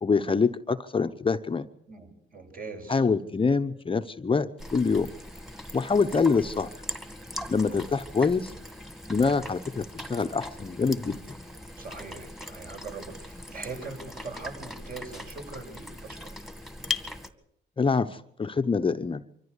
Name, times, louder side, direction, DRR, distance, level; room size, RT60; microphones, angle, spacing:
voice 1, 0.0-1.7 2.9-5.1 5.7-6.7 7.5-8.5 9.1-11.4 17.8-19.2, left 4 dB, 25° left, 8 dB, 0.9 m, -25 dB
voice 2, 1.9-3.1 7.7-7.9 11.8-16.4, right 3 dB, 45° right, 4 dB, 7.3 m, -41 dB
sound 1, 4.6-17.3, left 2 dB, ahead, 2.2 m, -40 dB
25.0 x 14.5 x 8.2 m, 0.72 s
cardioid pair, 90°, 20 cm